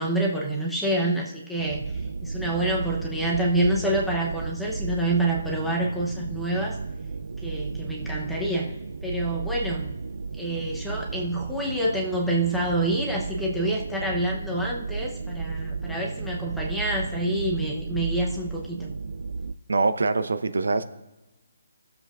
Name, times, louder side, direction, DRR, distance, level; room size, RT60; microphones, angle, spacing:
voice 1, 0.0-1.8 2.2-6.8 7.4-8.7 9.0-9.9 10.4-18.9, right 1 dB, ahead, -3 dB, 0.8 m, -27 dB
sound 1, 1.6-19.5, right 4 dB, 65° right, 0.4 m, -33 dB
voice 2, 19.7-20.8, right 3 dB, 85° right, 10 dB, 0.8 m, -23 dB
19.5 x 7.3 x 2.5 m, 1.0 s
hypercardioid pair, 175°, 0 cm